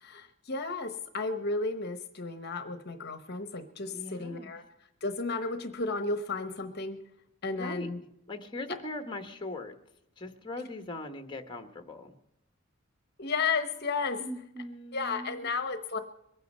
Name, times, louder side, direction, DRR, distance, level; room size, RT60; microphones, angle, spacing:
voice 1, 0.0-4.6 5.0-7.0 7.4-8.0 13.2-14.2 14.9-16.0, left 4 dB, 50° left, 10 dB, 0.9 m, -33 dB
voice 2, 3.9-4.5 7.5-7.9 8.3-9.7 10.2-12.1 14.2-15.5, left 1 dB, 25° left, 7 dB, 1.2 m, -40 dB
22.5 x 9.3 x 5.4 m, 0.81 s
head